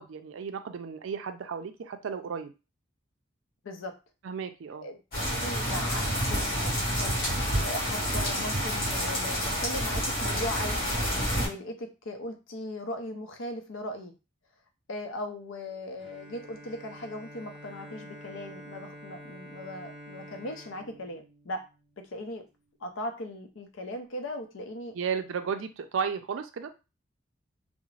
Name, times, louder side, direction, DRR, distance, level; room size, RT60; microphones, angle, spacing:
voice 1, 0.0-2.5 4.2-4.9 24.9-26.7, right 6 dB, 75° right, 9 dB, 0.4 m, -34 dB
voice 2, 3.6-4.0 4.8-5.0 5.2-7.4 7.6-10.9 11.3-14.1 14.9-21.6 22.0-22.4 22.8-25.0, left 1 dB, 75° left, 5 dB, 0.5 m, -38 dB
sound 1, 5.1-11.5, equal, 45° left, 1.1 m, -28 dB
Bowed string instrument, 16.0-22.0, equal, 5° right, 0.6 m, -48 dB
2.4 x 2.0 x 3.1 m, 0.28 s
head